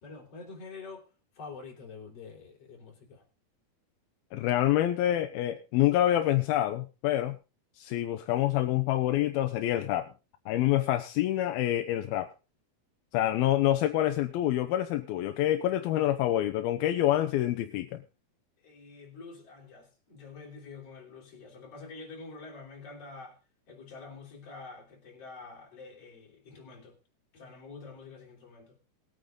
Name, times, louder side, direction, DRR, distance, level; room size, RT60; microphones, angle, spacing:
voice 1, 0.0-3.2 18.6-23.4 23.7-27.0 27.3-28.8, left 4 dB, 40° left, 4.7 m, -47 dB
voice 2, 4.3-7.4 7.8-10.1 10.5-12.3 13.1-18.0, left 13 dB, 80° left, 2.7 m, -27 dB
20.5 x 9.0 x 3.8 m
omnidirectional pair, 4.3 m